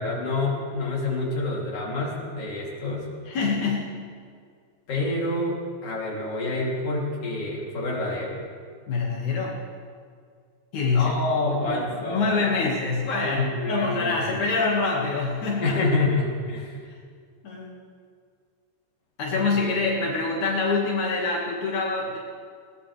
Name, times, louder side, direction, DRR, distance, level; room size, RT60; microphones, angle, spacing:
voice 1, 0.0-3.1 4.9-8.4 10.9-12.7 13.2-14.4 15.6-16.8 19.3-19.7, left 2 dB, 55° left, -4 dB, 4.0 m, -28 dB
voice 2, 3.3-3.9 8.9-9.6 10.7-11.1 11.7-15.8 16.9-17.0 17.4-17.8 19.2-22.2, left 4 dB, 80° left, -3 dB, 3.3 m, -25 dB
20.5 x 19.0 x 3.4 m, 2.1 s
omnidirectional pair, 3.3 m